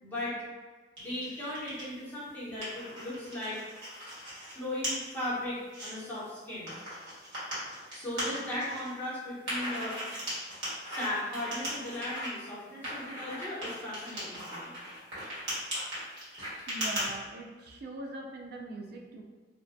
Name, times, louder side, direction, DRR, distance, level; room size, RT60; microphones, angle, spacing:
voice 1, 0.0-0.4 1.0-3.6 4.6-6.7 7.9-10.0 10.9-14.8, left 1 dB, 10° left, -10 dB, 0.8 m, -37 dB
sound 1, 1.0-1.9 2.3-4.5 4.8-4.9 5.4-5.9 6.7-8.9 9.4-12.3 12.8-17.0, equal, 70° right, 1.3 m, -38 dB
voice 2, 16.7-19.2, right 2 dB, 55° right, 2 dB, 0.3 m, -42 dB
2.4 x 2.1 x 2.5 m, 1.3 s
head